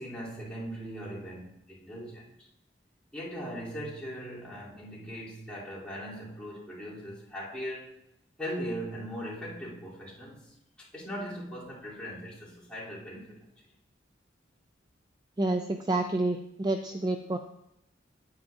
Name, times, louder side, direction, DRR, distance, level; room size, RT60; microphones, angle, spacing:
voice 1, 0.0-2.5 3.1-7.9 8.4-13.7, equal, 5° left, -9 dB, 3.0 m, -39 dB
voice 2, 15.4-17.4, right 2 dB, 20° right, 6 dB, 0.4 m, -29 dB
9.5 x 9.1 x 2.5 m, 0.82 s
head